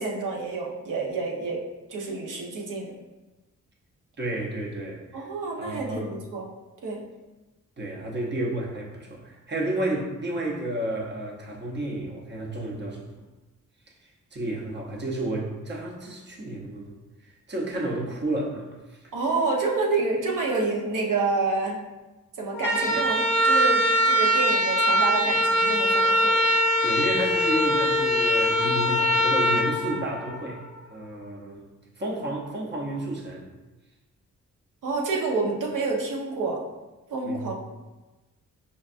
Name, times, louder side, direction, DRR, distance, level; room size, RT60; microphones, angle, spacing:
voice 1, 0.0-1.6 1.9-2.9 5.1-6.5 6.8-7.0 19.1-21.8 22.4-26.3 34.8-36.6 37.1-37.5, right 3 dB, 80° right, -1 dB, 0.8 m, -28 dB
voice 2, 4.2-5.3 5.6-6.1 7.8-13.2 14.3-16.9 17.2-19.0 22.9-23.0 26.8-31.7 32.0-33.4 37.2-37.5, right 1 dB, 35° right, -2 dB, 0.7 m, -31 dB
sound 1, 22.5-30.7, equal, 10° left, 0.7 m, -22 dB
5.3 x 2.3 x 2.5 m, 1.1 s
wide cardioid pair, 165°, 31 cm